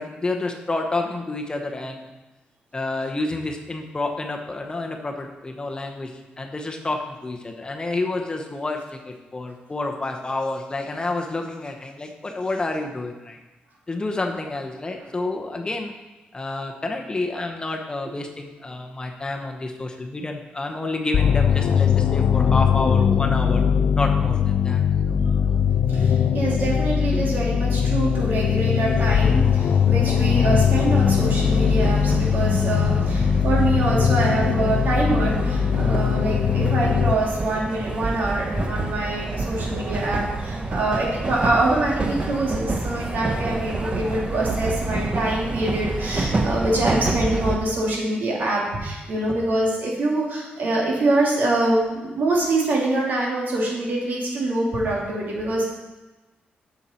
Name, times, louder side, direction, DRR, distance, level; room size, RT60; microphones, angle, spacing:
voice 1, 0.0-2.1 2.7-13.4 13.9-15.9 16.3-23.6 24.0-25.2 28.4-28.5 35.9-36.0 38.6-38.7, left 2 dB, 25° left, 3 dB, 0.9 m, -29 dB
sound 1, 21.1-37.1, left 7 dB, 70° left, 0.4 m, -20 dB
voice 2, 25.9-55.7, right 2 dB, 65° right, -3 dB, 2.7 m, -25 dB
sound 2, 31.0-47.6, right 2 dB, 30° right, 1.0 m, -28 dB
7.1 x 7.1 x 4.4 m, 1.1 s
cardioid pair, 90°, 3 cm